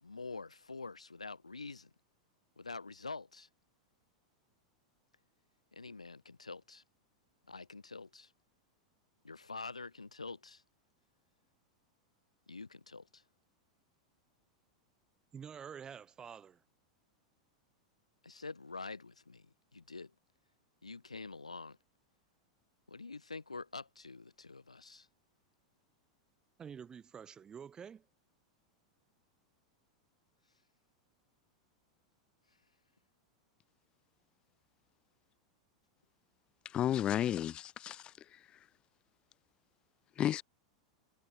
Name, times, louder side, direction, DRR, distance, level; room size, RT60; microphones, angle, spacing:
voice 1, 0.0-1.9 2.6-3.5 5.7-6.8 7.5-8.3 9.2-10.6 12.5-13.2 18.2-20.1 20.8-21.8 22.9-25.1, left 3 dB, 80° left, 1.6 m, -46 dB
voice 2, 15.3-16.6 26.6-28.1, right 7 dB, 20° right, 3.1 m, -48 dB
voice 3, 36.7-38.0 40.2-40.4, left 11 dB, 30° left, 0.4 m, -32 dB
figure-of-eight pair, 90°, 3 cm